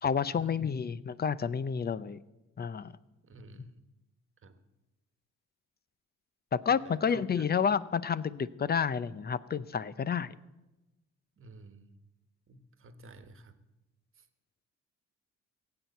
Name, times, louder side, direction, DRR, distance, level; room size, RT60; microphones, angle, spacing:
voice 1, 0.0-2.2 2.6-2.9 6.5-10.4, left 6 dB, 30° left, 17 dB, 0.6 m, -30 dB
voice 2, 3.2-3.8 4.4-4.6 6.8-7.4 11.4-12.0 12.5-13.6 14.2-14.3, right 3 dB, 45° right, 9 dB, 1.4 m, -52 dB
17.0 x 7.9 x 8.2 m, 1.0 s
cardioid pair, 90°, 30 cm